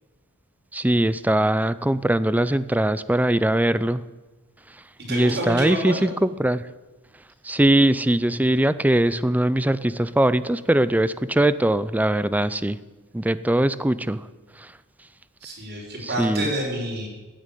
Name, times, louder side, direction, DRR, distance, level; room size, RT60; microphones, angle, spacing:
voice 1, 0.7-4.0 5.1-6.6 7.5-12.8 13.1-14.2 16.2-16.5, right 1 dB, 5° right, 15 dB, 0.5 m, -21 dB
voice 2, 5.0-6.1 15.4-17.1, right 1 dB, 50° right, -1 dB, 5.1 m, -28 dB
16.0 x 8.9 x 9.1 m, 1.2 s
head